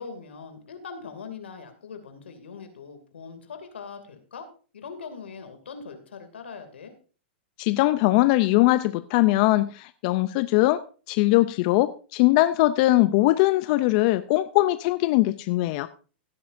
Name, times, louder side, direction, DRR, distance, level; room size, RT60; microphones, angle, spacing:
voice 1, 0.0-4.5 4.7-6.9, left 5 dB, 90° left, 7 dB, 2.4 m, -41 dB
voice 2, 7.6-10.8 11.1-15.9, left 18 dB, 45° left, 13 dB, 0.5 m, -21 dB
16.5 x 9.3 x 2.6 m, 0.37 s
hypercardioid pair, 130°, 6 cm